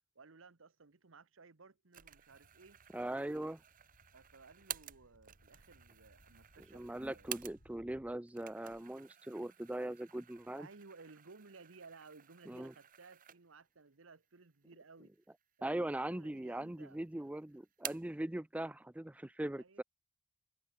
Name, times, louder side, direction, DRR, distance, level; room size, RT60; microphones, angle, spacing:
voice 1, 0.1-2.8 4.1-7.4 10.6-15.1 15.6-17.0 19.6-19.8, right 4 dB, 70° right, 1.1 m, -58 dB
sound 1, 1.9-7.9 8.3-13.7 14.1-14.2 15.1-15.7 16.1-16.8 17.1-18.2, right 11 dB, 45° right, 1.1 m, -51 dB
sound 2, 2.3-8.2, equal, 75° left, 7.2 m, -67 dB
voice 2, 2.9-3.6 6.7-10.7 12.5-12.7 15.6-19.8, right 1 dB, 5° right, 0.3 m, -40 dB
head